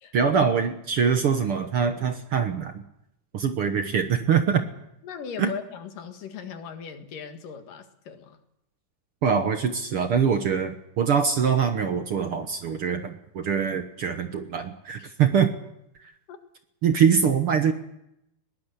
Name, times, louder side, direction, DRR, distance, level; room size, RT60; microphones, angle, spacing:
voice 1, 0.1-2.8 3.3-4.6 5.4-5.5 9.2-15.5 16.0-16.1 16.8-17.7, right 7 dB, 55° right, 7 dB, 1.7 m, -23 dB
voice 2, 5.0-8.4 16.3-16.4, left 7 dB, 85° left, 6 dB, 3.5 m, -38 dB
21.0 x 18.5 x 8.3 m, 0.81 s
omnidirectional pair, 3.7 m